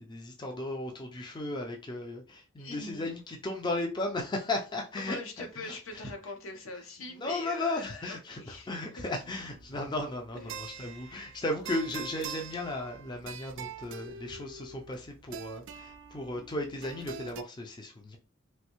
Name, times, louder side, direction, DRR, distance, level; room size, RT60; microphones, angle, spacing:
voice 1, 0.0-6.1 7.2-18.2, left 2 dB, 20° left, 0.4 m, -35 dB
voice 2, 2.6-3.2 5.0-8.7 10.3-11.4, left 3 dB, 75° left, 0.8 m, -43 dB
sound 1, 9.2-17.4, right 6 dB, 60° right, 0.3 m, -45 dB
3.1 x 2.6 x 2.9 m
head